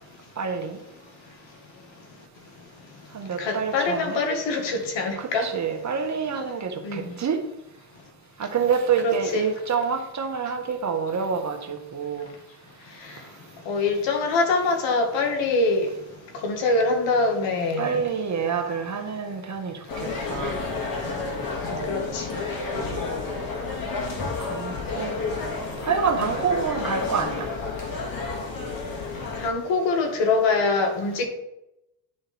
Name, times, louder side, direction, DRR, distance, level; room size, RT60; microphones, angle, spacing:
voice 1, 0.4-0.8 3.1-4.3 5.2-7.4 8.4-12.3 17.8-20.6 22.7-23.1 24.4-25.1 25.8-27.5, right 6 dB, 40° right, 5 dB, 1.3 m, -27 dB
voice 2, 3.4-5.5 6.8-7.1 9.0-9.5 13.7-15.9 16.4-18.0 21.9-22.3 29.4-31.3, left 3 dB, 70° left, 3 dB, 1.8 m, -24 dB
sound 1, 19.9-29.5, left 3 dB, 50° left, 2.0 m, -31 dB
10.5 x 3.9 x 4.2 m, 0.88 s
cardioid pair, 85°, 45 cm